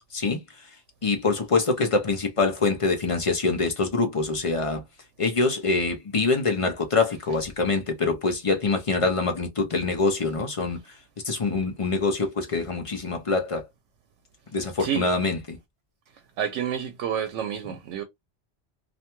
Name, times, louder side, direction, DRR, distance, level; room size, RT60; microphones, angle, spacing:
voice 1, 0.1-0.8 1.0-4.8 5.2-11.0 11.2-13.7 14.5-15.6, left 3 dB, 45° left, 0.4 m, -25 dB
voice 2, 14.8-15.1 16.4-18.0, right 9 dB, 80° right, 0.9 m, -29 dB
2.5 x 2.2 x 2.9 m
omnidirectional pair, 1.2 m